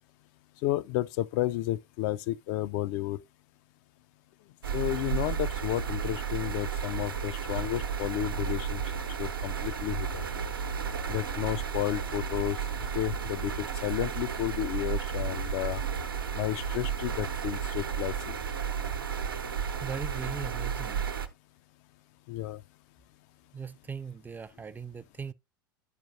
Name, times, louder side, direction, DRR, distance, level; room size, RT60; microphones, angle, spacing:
voice 1, 0.6-3.2 4.7-8.8 9.2-10.2 11.1-12.6 12.9-15.8 16.3-18.4 22.3-22.6, left 14 dB, 55° left, 0.4 m, -32 dB
sound 1, 4.6-21.3, right 7 dB, 85° right, 0.8 m, -33 dB
voice 2, 19.8-21.0 23.5-25.3, right 6 dB, 15° right, 0.4 m, -39 dB
12.5 x 4.4 x 2.6 m
figure-of-eight pair, 80°, 12 cm